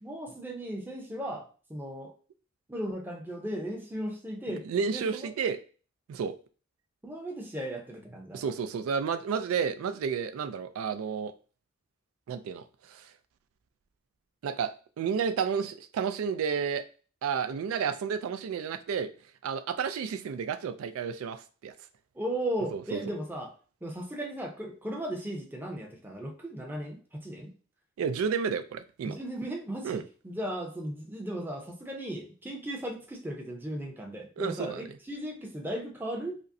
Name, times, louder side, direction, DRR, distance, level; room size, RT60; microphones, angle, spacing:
voice 1, 0.0-2.1 2.7-4.6 4.9-5.3 7.0-8.4 22.1-23.5 23.8-27.5 29.0-36.4, right 1 dB, 10° right, 1 dB, 0.6 m, -36 dB
voice 2, 4.5-5.6 6.1-6.3 8.3-11.3 12.3-13.1 14.4-16.8 17.2-19.1 19.4-21.7 22.7-23.0 28.0-29.2 29.8-30.0 34.4-34.8, right 6 dB, 80° right, 11 dB, 0.3 m, -31 dB
5.0 x 2.1 x 2.6 m, 0.38 s
head